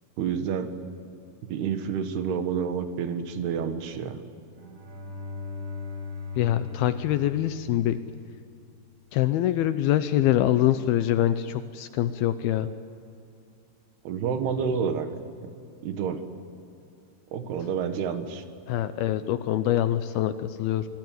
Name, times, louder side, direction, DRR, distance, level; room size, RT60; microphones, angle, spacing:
voice 1, 0.2-0.7 1.5-4.2 14.0-15.1 15.8-16.2 17.3-18.4, right 7 dB, 75° right, 8 dB, 3.3 m, -29 dB
Bowed string instrument, 4.4-8.4, left 4 dB, 55° right, 6.8 m, -38 dB
voice 2, 6.4-8.0 9.1-12.7 18.7-20.9, left 12 dB, 80° left, 12 dB, 2.4 m, -24 dB
26.5 x 19.5 x 9.4 m, 2.5 s
omnidirectional pair, 4.9 m